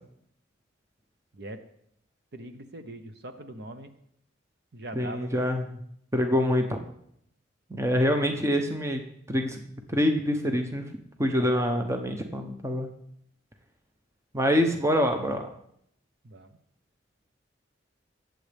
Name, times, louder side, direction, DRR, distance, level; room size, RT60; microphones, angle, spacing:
voice 1, 2.3-3.9 4.7-5.5 16.2-16.6, right 1 dB, 55° right, 8 dB, 0.9 m, -41 dB
voice 2, 4.9-5.6 6.1-6.8 7.7-9.0 9.3-9.6 9.9-10.9 11.2-12.9 14.3-15.5, equal, 15° right, 5 dB, 0.8 m, -25 dB
21.0 x 7.7 x 3.5 m, 0.71 s
head